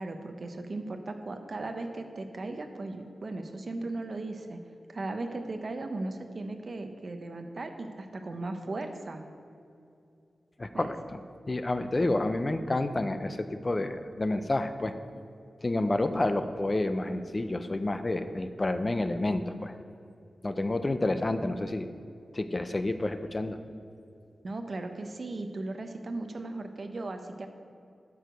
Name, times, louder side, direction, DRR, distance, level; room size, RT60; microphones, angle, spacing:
voice 1, 0.0-4.6 4.9-9.2 10.7-10.9 24.4-27.5, right 2 dB, 45° right, 6 dB, 0.7 m, -37 dB
voice 2, 10.6-11.2 11.5-14.9 15.6-19.7 20.4-21.9 22.3-23.6, left 2 dB, 25° left, 9 dB, 0.4 m, -29 dB
12.5 x 4.7 x 5.1 m, 2.6 s
wide cardioid pair, 140°, 0 cm